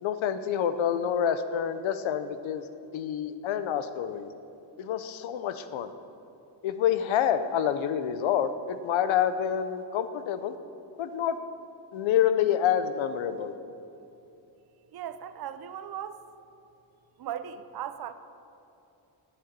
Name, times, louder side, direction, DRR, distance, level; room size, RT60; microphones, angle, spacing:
voice 1, 0.0-2.6 2.9-4.3 4.8-5.9 6.6-10.5 11.0-11.4 11.9-13.5, left 9 dB, 85° left, 11 dB, 0.8 m, -27 dB
voice 2, 14.9-16.2 17.2-18.1, right 10 dB, 55° right, 11 dB, 0.7 m, -37 dB
9.9 x 8.1 x 8.3 m, 2.9 s
cardioid pair, 115°, 46 cm